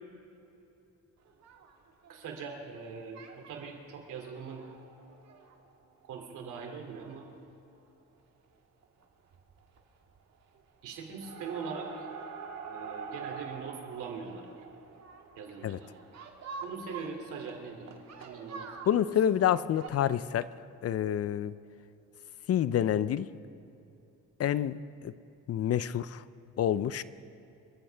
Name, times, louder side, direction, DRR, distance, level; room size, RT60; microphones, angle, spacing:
sound 1, 1.2-2.8 3.1-3.7 4.2-6.2 6.7-6.8 6.9-7.1 7.4-7.5 8.8-9.0 9.3-9.8 10.1-10.6 10.9-19.9, right 5 dB, 60° right, 1.9 m, -46 dB
voice 1, 2.1-4.7 6.0-7.2 10.8-12.1 12.7-14.6 15.4-15.9 16.6-18.9, right 5 dB, 85° right, 3 dB, 2.7 m, -42 dB
voice 2, 18.9-20.5 20.8-21.5 22.5-23.3 24.4-25.1 25.5-26.2 26.6-27.0, left 10 dB, 55° left, 16 dB, 0.6 m, -28 dB
26.5 x 14.5 x 3.4 m, 2.8 s
cardioid pair, 90°, 30 cm